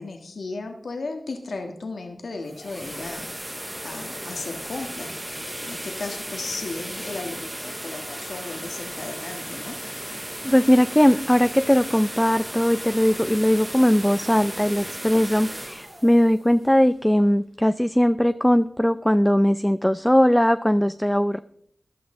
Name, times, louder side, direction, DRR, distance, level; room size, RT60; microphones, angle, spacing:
voice 1, 0.0-5.3 5.6-9.8, left 3 dB, 85° left, 3 dB, 1.7 m, -35 dB
sound 1, 2.3-17.2, right 1 dB, 10° right, 1.0 m, -35 dB
voice 2, 10.4-21.4, equal, 5° left, 10 dB, 0.5 m, -19 dB
14.0 x 11.5 x 3.8 m, 0.63 s
wide cardioid pair, 55°, 0 cm